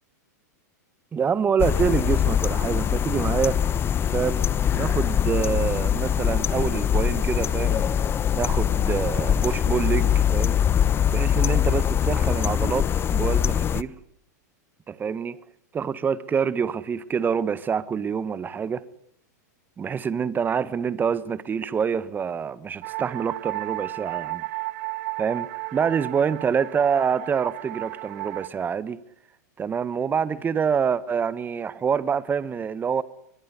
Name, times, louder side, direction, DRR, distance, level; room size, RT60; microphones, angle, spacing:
voice 1, 1.1-3.6 4.1-4.4 4.7-8.0 8.3-10.6 11.1-13.9 14.9-15.4 15.7-18.8 19.8-24.4 25.2-29.0 29.6-33.0, right 6 dB, 20° right, 1.5 m, -26 dB
sound 1, 1.6-13.8, left 9 dB, 25° left, 1.0 m, -23 dB
sound 2, 22.8-28.5, right 21 dB, 55° right, 1.4 m, -34 dB
23.0 x 22.5 x 10.0 m
hypercardioid pair, 115°, 10 cm